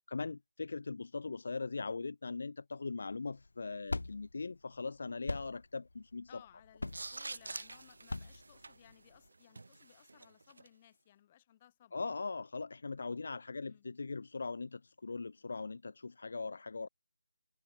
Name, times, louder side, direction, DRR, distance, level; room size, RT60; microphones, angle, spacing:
voice 1, 0.1-6.3 11.9-16.9, left 4 dB, 55° left, 0.8 m, -40 dB
sound 1, 3.1-9.3, left 2 dB, 85° left, 1.4 m, -43 dB
voice 2, 6.3-11.9 13.7-13.9, left 11 dB, 20° left, 3.4 m, -62 dB
sound 2, 6.8-10.7, right 3 dB, 70° right, 0.9 m, -47 dB
figure-of-eight pair, 170°, 0 cm